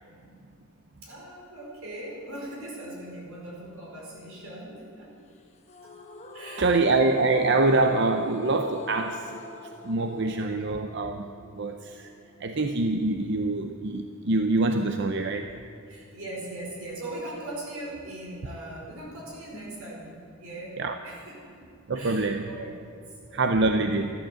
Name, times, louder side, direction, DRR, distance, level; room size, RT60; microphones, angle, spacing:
voice 1, 0.0-0.4 1.0-5.2 5.8-5.9 6.3-6.9 15.9-21.7 21.9-23.8, right 1 dB, 85° right, -3 dB, 4.8 m, -40 dB
sound 1, 5.7-12.7, left 2 dB, 30° left, 1.2 m, -43 dB
voice 2, 6.6-9.4 9.8-11.3 11.6-12.1 12.4-15.5 20.8-21.0 21.9-22.4 23.3-24.1, right 2 dB, 55° right, 6 dB, 0.6 m, -25 dB
14.0 x 11.5 x 7.5 m, 2.2 s
head